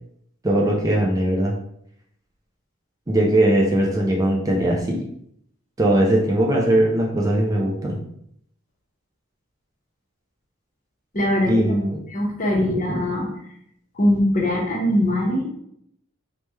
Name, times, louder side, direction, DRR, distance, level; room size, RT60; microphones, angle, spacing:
voice 1, 0.4-1.6 3.1-5.0 5.8-8.0 11.5-12.0 12.5-12.7, right 1 dB, 15° right, -2 dB, 0.4 m, -20 dB
voice 2, 11.1-11.8 12.1-13.3 14.0-15.5, left 1 dB, 40° left, -2 dB, 0.8 m, -21 dB
3.2 x 2.1 x 3.1 m, 0.72 s
head